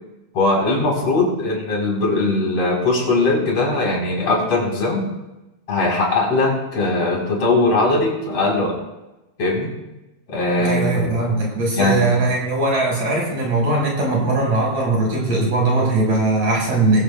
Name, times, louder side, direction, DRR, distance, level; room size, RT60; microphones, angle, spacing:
voice 1, 0.3-5.1 5.7-8.8 9.4-9.7 10.3-11.2 11.7-12.1, left 2 dB, 40° left, -2 dB, 5.0 m, -20 dB
voice 2, 10.6-17.0, right 2 dB, 50° right, -3 dB, 6.5 m, -20 dB
22.0 x 15.5 x 2.3 m, 1.0 s
omnidirectional pair, 4.5 m